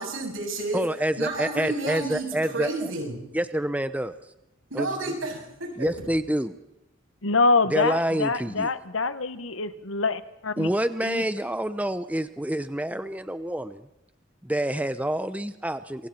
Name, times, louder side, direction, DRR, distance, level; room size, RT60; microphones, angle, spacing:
voice 1, 0.0-0.8 1.2-2.3 2.5-3.1 4.7-5.9, right 2 dB, 80° right, 1 dB, 7.9 m, -31 dB
voice 2, 0.7-2.9 3.3-4.1 4.7-5.1 5.8-6.5 7.7-8.7 10.6-13.9 14.4-16.1, right 1 dB, 5° right, 11 dB, 0.7 m, -27 dB
voice 3, 7.2-10.7 11.0-11.2, left 3 dB, 90° left, 11 dB, 1.5 m, -25 dB
27.5 x 24.0 x 4.4 m, 0.89 s
head